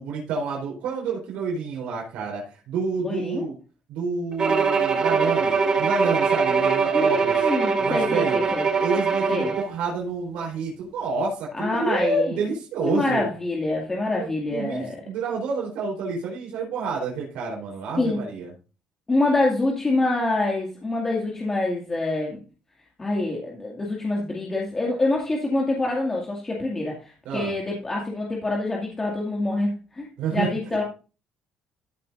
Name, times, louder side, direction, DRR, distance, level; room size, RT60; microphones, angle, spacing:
voice 1, 0.0-3.6 3.9-7.5 7.8-8.4 8.8-13.3 14.2-18.5 27.3-27.5 30.2-30.5, right 4 dB, 80° right, -2 dB, 3.8 m, -29 dB
voice 2, 3.0-3.4 6.9-8.7 9.3-9.5 11.5-12.4 12.8-15.0 18.0-18.2 19.1-22.4 23.0-30.8, left 2 dB, 20° left, -2 dB, 2.2 m, -26 dB
Bowed string instrument, 4.4-9.7, right 5 dB, 35° right, 1.7 m, -22 dB
14.0 x 7.4 x 2.6 m, 0.34 s
cardioid pair, 120°, 2 cm